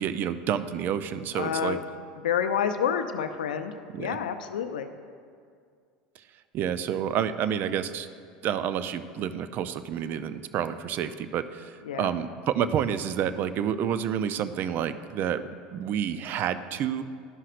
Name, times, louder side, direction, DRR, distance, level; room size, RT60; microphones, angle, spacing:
voice 1, 0.0-1.8 3.9-4.2 6.5-8.1 8.4-15.4 15.7-17.0, right 9 dB, 50° right, 12 dB, 0.4 m, -29 dB
voice 2, 1.3-1.8 2.2-4.9 11.8-12.1, left 8 dB, 85° left, 9 dB, 0.4 m, -29 dB
12.5 x 5.6 x 2.5 m, 2.2 s
hypercardioid pair, 90°, 4 cm